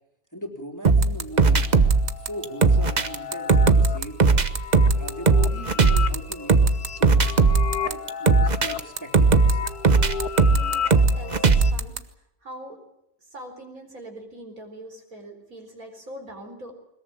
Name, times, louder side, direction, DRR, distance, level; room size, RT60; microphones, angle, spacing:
voice 1, 0.3-1.6 2.2-4.4 4.9-6.6 7.0-7.4 7.8-9.6, right 1 dB, 10° left, 0 dB, 3.5 m, -39 dB
sound 1, 0.8-12.0, right 4 dB, 30° right, 1.0 m, -18 dB
sound 2, 1.4-11.7, left 8 dB, 65° left, 1.5 m, -34 dB
voice 2, 10.5-12.0 12.4-12.8 13.3-16.7, right 1 dB, 55° right, 3 dB, 4.7 m, -42 dB
21.5 x 21.0 x 8.9 m, 0.83 s
omnidirectional pair, 1.8 m